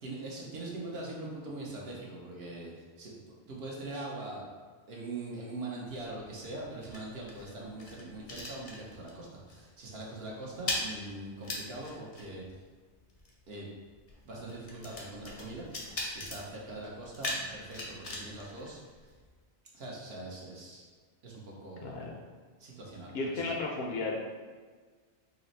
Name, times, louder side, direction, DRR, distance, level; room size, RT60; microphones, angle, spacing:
voice 1, 0.0-4.4 4.9-12.4 13.5-13.7 14.2-15.7 16.1-19.1 19.7-20.9 21.2-22.0 22.6-23.4, right 2 dB, 65° right, -4 dB, 1.0 m, -42 dB
sound 1, 5.9-9.2 9.5-9.8 10.0-19.4, left 1 dB, 40° left, 0.6 m, -41 dB
voice 2, 21.8-22.2 23.1-24.4, left 3 dB, 70° left, 0 dB, 0.8 m, -34 dB
4.1 x 2.0 x 4.0 m, 1.5 s
omnidirectional pair, 1.2 m